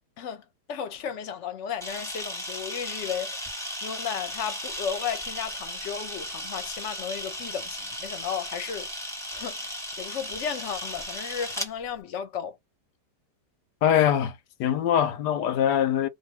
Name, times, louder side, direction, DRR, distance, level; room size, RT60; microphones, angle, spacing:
voice 1, 0.7-3.5 3.8-8.9 9.3-12.6, left 7 dB, 55° left, 0.9 m, -34 dB
Camera, 1.8-11.7, equal, ahead, 0.7 m, -36 dB
voice 2, 13.8-16.1, left 10 dB, 85° left, 1.2 m, -23 dB
2.6 x 2.6 x 2.9 m
omnidirectional pair, 1.8 m